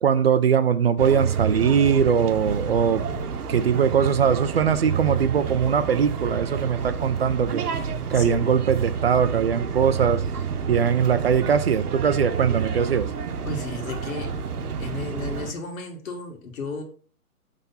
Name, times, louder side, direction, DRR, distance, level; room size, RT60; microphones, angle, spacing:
voice 1, 0.0-3.0 3.5-10.2 10.7-13.1, right 7 dB, 45° right, 0.4 m, -21 dB
sound 1, 1.0-15.5, right 6 dB, 80° right, 0.9 m, -29 dB
voice 2, 8.1-8.5 13.5-14.3 14.8-16.8, left 3 dB, 65° left, 1.9 m, -33 dB
5.4 x 3.6 x 5.6 m
hypercardioid pair, 150°, 44 cm